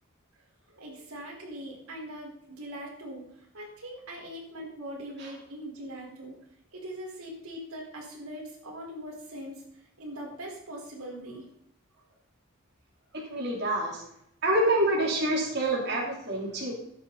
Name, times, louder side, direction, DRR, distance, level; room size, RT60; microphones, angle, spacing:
voice 1, 0.7-6.4 6.7-11.5 12.1-12.2 13.1-13.2, equal, 90° right, -2 dB, 4.4 m, -41 dB
voice 2, 13.1-14.0 14.4-16.7, right 1 dB, 50° right, -3 dB, 3.3 m, -27 dB
14.5 x 10.0 x 4.1 m, 0.74 s
head